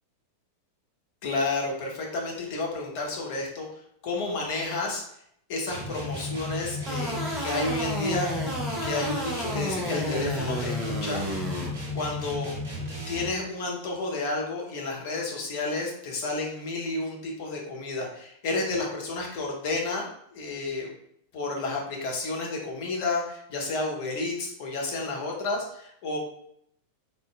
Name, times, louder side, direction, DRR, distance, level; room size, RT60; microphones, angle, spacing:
voice 1, 1.2-3.7 4.0-5.0 5.5-8.5 8.8-11.2 11.9-12.5 13.1-20.9 21.3-26.2, left 3 dB, 45° left, 0 dB, 0.8 m, -31 dB
sound 1, 5.7-13.4, left 2 dB, 50° right, 1.0 m, -34 dB
sound 2, 6.9-11.7, equal, 10° right, 0.7 m, -32 dB
3.9 x 2.5 x 2.3 m, 0.70 s
figure-of-eight pair, 90°, 0 cm